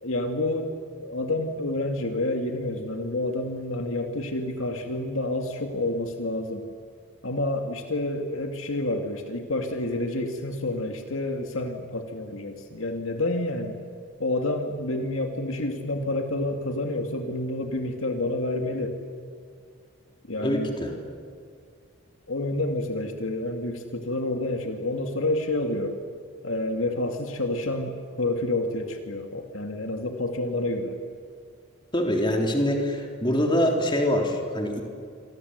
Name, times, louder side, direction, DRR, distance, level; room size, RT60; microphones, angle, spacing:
voice 1, 0.0-6.7 7.2-13.8 14.2-19.0 20.3-20.7 22.3-26.0 26.4-31.0, left 2 dB, 70° left, 4 dB, 2.3 m, -29 dB
voice 2, 20.4-20.9 31.9-34.8, equal, 20° left, 1 dB, 3.6 m, -24 dB
27.5 x 25.5 x 8.2 m, 2.3 s
head